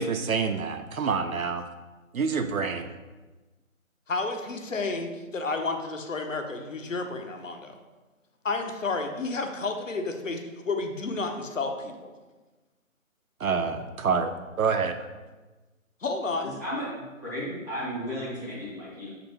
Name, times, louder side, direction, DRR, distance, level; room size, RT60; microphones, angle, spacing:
voice 1, 0.0-1.6 2.1-2.9 13.4-14.3 14.6-15.0, right 5 dB, 80° right, 7 dB, 0.5 m, -27 dB
voice 2, 4.1-7.8 8.4-10.4 10.7-12.1 16.0-16.5, left 3 dB, 65° left, 4 dB, 0.7 m, -31 dB
voice 3, 17.2-19.1, equal, 15° left, -11 dB, 0.7 m, -34 dB
6.2 x 2.5 x 3.1 m, 1.2 s
figure-of-eight pair, 155°, 41 cm